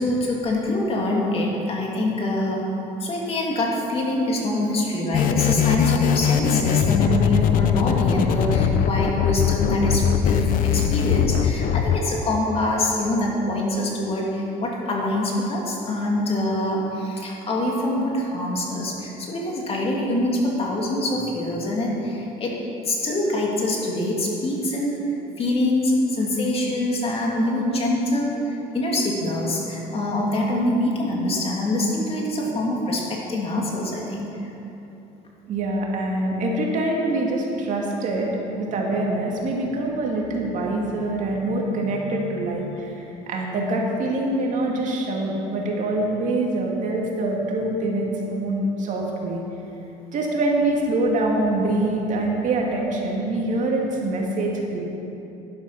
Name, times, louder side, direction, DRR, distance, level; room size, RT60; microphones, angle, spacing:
voice 1, 0.0-2.7 3.0-22.6 22.8-34.5, left 1 dB, 40° left, -2 dB, 2.7 m, -24 dB
sound 1, 5.1-12.0, left 8 dB, 65° left, 0.7 m, -21 dB
voice 2, 35.5-49.4 50.1-54.8, right 2 dB, 55° right, -1 dB, 2.3 m, -24 dB
11.0 x 11.0 x 5.8 m, 3.0 s
cardioid pair, 115°, 15 cm